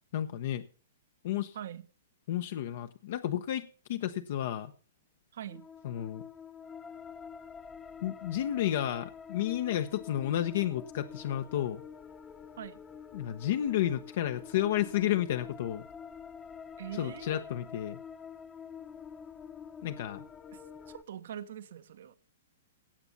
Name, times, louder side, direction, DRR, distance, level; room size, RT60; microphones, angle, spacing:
voice 1, 0.1-0.6 1.2-1.6 2.3-4.7 5.8-6.2 8.0-11.8 13.1-15.9 17.0-18.0 19.8-20.2, left 12 dB, 60° left, 0.9 m, -31 dB
voice 2, 5.3-5.6 12.6-12.8 16.8-17.4 20.5-20.6 20.9-22.1, right 10 dB, 65° right, 1.1 m, -43 dB
sound 1, 5.5-21.0, left 7 dB, 20° left, 0.9 m, -47 dB
16.5 x 8.2 x 4.1 m
hypercardioid pair, 120°, 0 cm